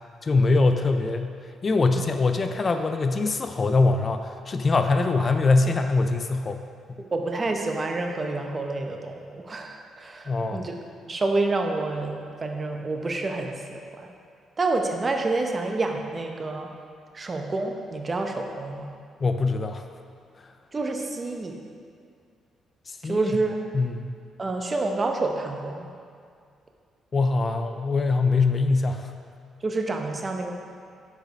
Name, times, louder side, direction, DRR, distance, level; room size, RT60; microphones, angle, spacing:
voice 1, 0.2-1.3 1.6-6.6 10.3-10.6 19.2-19.8 22.9-23.2 23.7-24.1 27.1-29.1, left 3 dB, 35° left, 7 dB, 0.4 m, -23 dB
voice 2, 7.0-10.8 11.1-14.1 14.6-16.7 17.1-18.9 20.7-21.5 23.0-23.6 24.4-25.9 29.6-30.5, right 3 dB, 30° right, 3 dB, 0.8 m, -28 dB
6.5 x 5.1 x 5.2 m, 2.2 s
cardioid pair, 90°, 0 cm